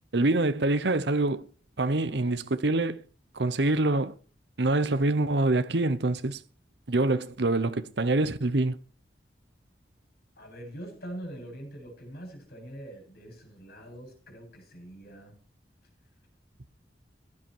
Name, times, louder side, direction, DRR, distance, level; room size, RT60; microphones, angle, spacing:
voice 1, 0.1-1.5 1.8-3.0 3.3-4.1 4.6-6.4 6.9-8.8, right 2 dB, 70° right, 0.9 m, -25 dB
voice 2, 10.4-15.4, right 1 dB, 60° left, 8.0 m, -43 dB
15.5 x 10.5 x 4.7 m
head